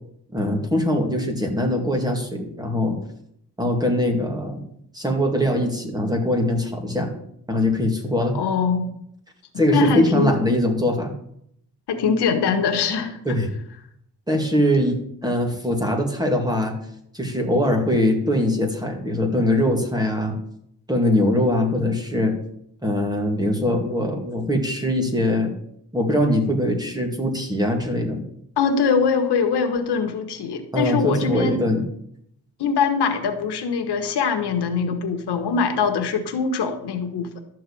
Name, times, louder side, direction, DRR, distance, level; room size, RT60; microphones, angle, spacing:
voice 1, 0.3-3.0 3.6-4.6 4.9-7.1 7.5-8.4 9.6-11.1 13.3-13.5 14.3-16.8 17.1-20.4 20.9-22.4 22.8-25.5 25.9-28.2 30.7-31.8, left 1 dB, 10° right, 2 dB, 2.2 m, -22 dB
voice 2, 8.3-8.9 9.7-10.3 11.9-13.2 28.6-31.6 32.6-37.4, left 5 dB, 80° left, 7 dB, 1.5 m, -22 dB
12.0 x 4.7 x 8.5 m, 0.72 s
cardioid pair, 135°, 40 cm